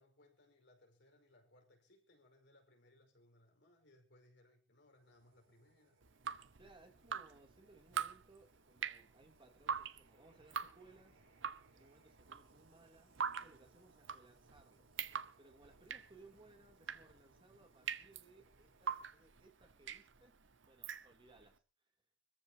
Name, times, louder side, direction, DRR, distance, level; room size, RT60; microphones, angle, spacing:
voice 1, 0.0-6.1, left 1 dB, 65° left, 4.9 m, -68 dB
sound 1, 4.8-20.2, right 2 dB, 85° right, 4.9 m, -72 dB
Drip, 6.0-21.5, right 7 dB, 70° right, 0.9 m, -45 dB
voice 2, 6.6-11.2 11.7-14.9 15.4-21.6, right 2 dB, 25° right, 3.0 m, -64 dB
25.0 x 14.5 x 2.9 m
head